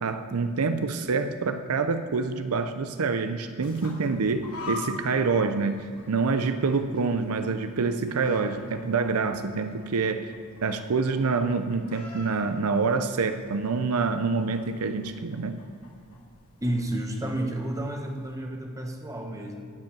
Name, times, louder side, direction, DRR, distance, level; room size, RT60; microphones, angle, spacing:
voice 1, 0.0-10.3 10.6-15.6, right 4 dB, 80° right, 9 dB, 0.6 m, -26 dB
sound 1, 3.6-18.3, left 2 dB, 75° left, 2.3 m, -46 dB
voice 2, 16.6-19.7, right 1 dB, 15° right, 2 dB, 1.1 m, -31 dB
12.5 x 5.3 x 8.8 m, 2.2 s
head